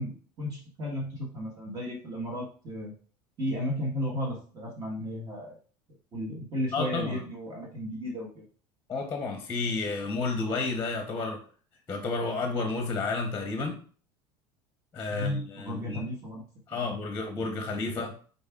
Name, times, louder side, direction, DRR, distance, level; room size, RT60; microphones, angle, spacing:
voice 1, 0.0-2.9 3.4-5.5 6.1-8.5 15.1-16.4 16.7-16.9, equal, 35° right, -2 dB, 1.4 m, -34 dB
voice 2, 6.7-7.2 8.9-11.4 11.9-13.8 14.9-16.0 16.7-18.2, left 3 dB, 20° left, 4 dB, 0.9 m, -31 dB
5.3 x 4.0 x 2.4 m, 0.42 s
supercardioid pair, 115°, 11 cm